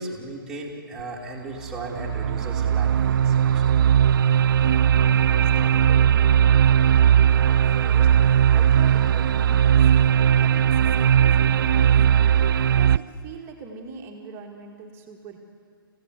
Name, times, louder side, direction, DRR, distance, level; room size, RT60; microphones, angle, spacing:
voice 1, 0.0-3.7, right 2 dB, 5° right, -4 dB, 3.1 m, -36 dB
sound 1, 1.0-1.1 1.6-13.0, right 9 dB, 65° right, 0.5 m, -18 dB
voice 2, 3.9-10.1 10.4-12.4 12.7-15.4, right 5 dB, 20° right, 1 dB, 2.1 m, -42 dB
28.0 x 16.0 x 8.3 m, 2.4 s
hypercardioid pair, 150°, 12 cm